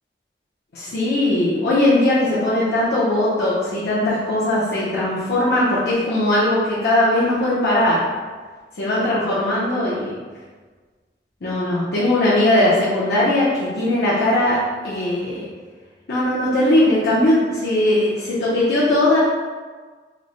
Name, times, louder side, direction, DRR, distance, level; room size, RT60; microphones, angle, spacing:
voice 1, 0.7-8.0 8.8-10.2 11.4-15.5 16.1-19.2, left 1 dB, 75° left, -9 dB, 0.7 m, -19 dB
3.2 x 2.0 x 3.8 m, 1.5 s
head